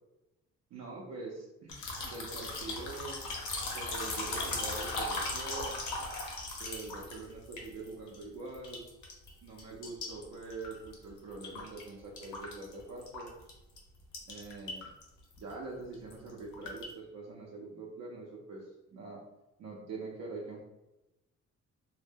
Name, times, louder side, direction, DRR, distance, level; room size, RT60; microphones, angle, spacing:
voice 1, 0.7-3.3 3.7-5.8 6.6-8.8 9.4-13.3 14.3-14.9 15.4-19.2 19.6-20.6, right 3 dB, 60° right, -3 dB, 0.6 m, -44 dB
sound 1, 1.7-8.2 8.5-9.3 9.6-11.9 12.2-13.5 13.8-13.9 14.1-15.0 15.3-15.5 15.9-16.9, left 2 dB, 75° left, 0.8 m, -38 dB
2.1 x 2.0 x 3.4 m, 0.97 s
cardioid pair, 90°, 30 cm